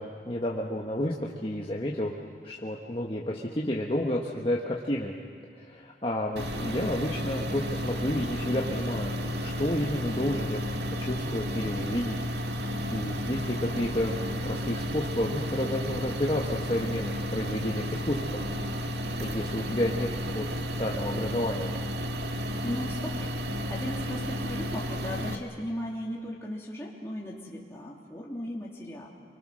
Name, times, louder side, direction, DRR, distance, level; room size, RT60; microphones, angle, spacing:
voice 1, 0.0-2.2 2.4-5.1 5.5-9.1 9.4-10.6 11.0-12.2 12.9-18.4 19.2-20.1 20.3-21.7, left 1 dB, 30° left, -2 dB, 1.5 m, -31 dB
sound 1, 6.4-25.4, equal, 75° right, 1.7 m, -32 dB
voice 2, 22.6-23.4 23.7-29.1, left 1 dB, 15° left, -4 dB, 3.2 m, -36 dB
28.0 x 24.0 x 6.5 m, 2.1 s
head